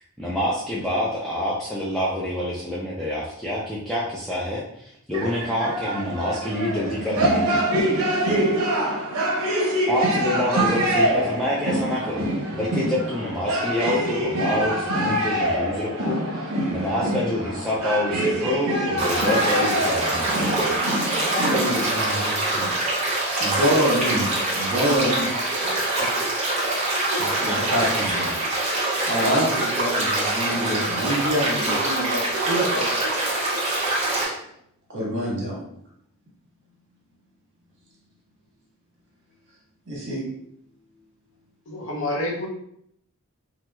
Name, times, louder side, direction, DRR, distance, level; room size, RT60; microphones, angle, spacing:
voice 1, 0.2-7.6 7.9-8.3 9.9-12.3 12.5-20.8, left 1 dB, ahead, -7 dB, 0.3 m, -27 dB
sound 1, 5.1-22.0, right 1 dB, 75° right, 0.6 m, -25 dB
sound 2, 19.0-34.2, right 2 dB, 30° right, 0.8 m, -24 dB
voice 2, 21.5-24.3 24.5-26.5 26.7-28.4 28.6-32.9 33.3-33.4 34.2-34.3 34.9-35.6 39.9-40.2, equal, 55° right, -4 dB, 1.1 m, -27 dB
voice 3, 41.7-42.5, left 1 dB, 60° left, -2 dB, 0.7 m, -28 dB
4.3 x 2.0 x 2.2 m, 0.72 s
head